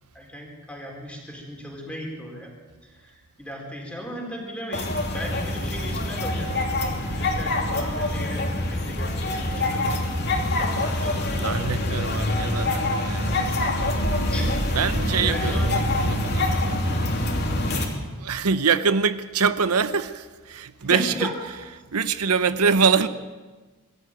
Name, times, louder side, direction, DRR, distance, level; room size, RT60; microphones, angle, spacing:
voice 1, 0.1-2.5 3.0-11.6 14.3-14.6 15.2-15.7 20.8-21.3, equal, 5° left, 4.5 m, -36 dB
sound 1, 4.7-17.8, left 1 dB, 50° left, 3.0 m, -25 dB
voice 2, 11.4-13.4 14.7-16.8 18.2-21.3 21.9-23.1, right 5 dB, 85° right, 0.8 m, -24 dB
22.0 x 14.5 x 9.1 m
head